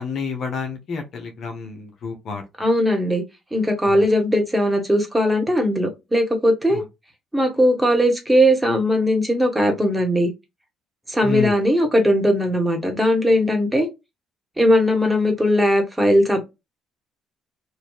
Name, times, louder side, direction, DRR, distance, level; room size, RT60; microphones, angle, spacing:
voice 1, 0.0-2.4 3.9-4.1 6.7-6.8 11.2-11.5, left 5 dB, 60° left, 0.9 m, -29 dB
voice 2, 2.6-3.2 3.5-6.8 7.3-10.3 11.1-13.9 14.6-16.4, equal, 10° right, 1.4 m, -19 dB
3.0 x 2.6 x 2.3 m
hypercardioid pair, 55°, 0 cm